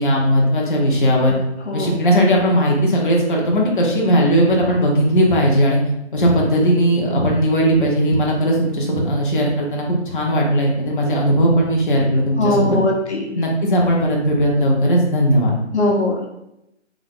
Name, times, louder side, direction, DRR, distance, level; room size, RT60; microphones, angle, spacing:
voice 1, 0.0-1.4 1.7-5.8 6.1-12.8 13.3-15.6, equal, 45° left, -2 dB, 1.0 m, -17 dB
voice 2, 12.4-13.3 15.7-16.3, left 2 dB, 70° left, -1 dB, 1.2 m, -20 dB
3.7 x 3.0 x 3.6 m, 0.85 s
hypercardioid pair, 170°, 35 cm